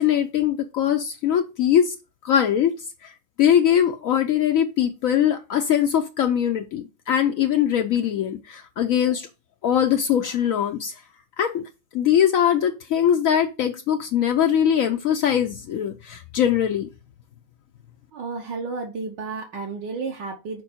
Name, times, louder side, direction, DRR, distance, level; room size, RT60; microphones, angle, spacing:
voice 1, 0.0-1.9 2.2-3.1 3.4-9.3 9.6-10.9 11.4-11.6 11.9-16.9, left 9 dB, 85° left, 0.7 m, -21 dB
voice 2, 18.1-20.6, right 4 dB, 70° right, 1.6 m, -32 dB
6.4 x 4.6 x 4.4 m
omnidirectional pair, 2.1 m